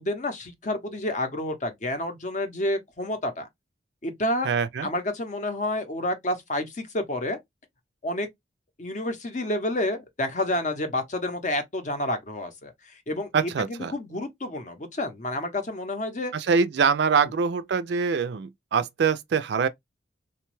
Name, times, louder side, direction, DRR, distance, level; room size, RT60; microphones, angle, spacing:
voice 1, 0.0-3.5 4.0-4.5 4.8-7.4 8.0-8.3 8.8-12.7 13.1-16.3, left 1 dB, 40° left, 0.6 m, -29 dB
voice 2, 4.4-4.9 13.3-13.9 16.3-19.7, right 5 dB, 65° right, 0.4 m, -24 dB
2.9 x 2.2 x 3.0 m
head